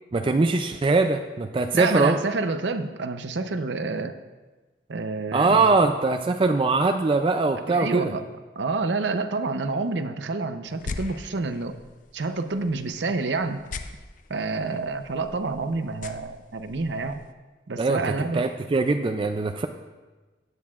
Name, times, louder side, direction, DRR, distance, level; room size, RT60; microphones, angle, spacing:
voice 1, 0.1-2.2 5.3-8.1 17.8-19.7, right 3 dB, 30° right, 6 dB, 0.4 m, -22 dB
voice 2, 1.7-4.2 4.9-5.7 7.7-8.2 8.6-11.8 12.1-13.6 14.3-17.2 17.7-18.4, right 3 dB, 90° right, 9 dB, 0.7 m, -28 dB
sound 1, 10.7-17.3, left 3 dB, 45° left, 0.5 m, -41 dB
15.5 x 9.6 x 2.4 m, 1.3 s
head